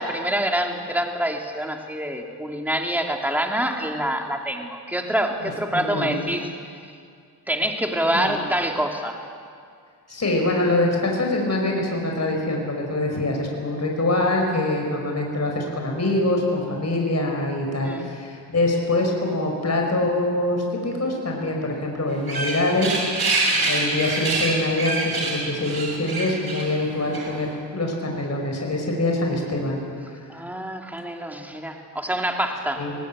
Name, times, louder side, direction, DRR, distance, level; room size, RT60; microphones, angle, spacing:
voice 1, 0.0-6.5 7.5-9.2 17.8-18.1 30.3-32.8, right 1 dB, 5° right, 2 dB, 2.7 m, -26 dB
voice 2, 5.4-6.2 8.1-8.4 10.1-23.0 23.6-29.8 32.8-33.0, left 2 dB, 35° left, 1 dB, 5.3 m, -24 dB
sound 1, 22.1-27.5, right 2 dB, 60° right, 6.4 m, -26 dB
20.0 x 19.0 x 8.8 m, 2.2 s
cardioid pair, 75°, 42 cm